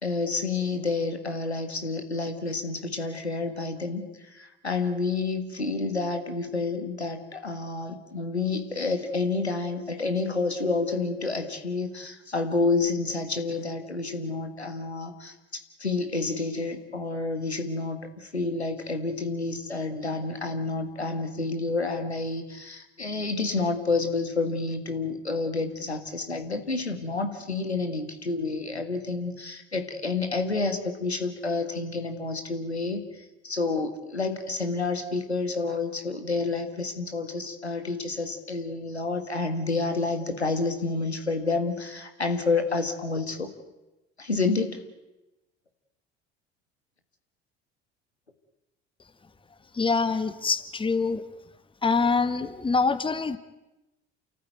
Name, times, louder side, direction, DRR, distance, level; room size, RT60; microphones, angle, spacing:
voice 1, 0.0-43.5 44.2-44.8, left 3 dB, 85° left, 6 dB, 1.7 m, -29 dB
voice 2, 49.8-51.2 51.8-53.4, left 4 dB, 15° left, 13 dB, 1.4 m, -25 dB
29.0 x 14.0 x 9.1 m, 1.0 s
figure-of-eight pair, 60°, 32 cm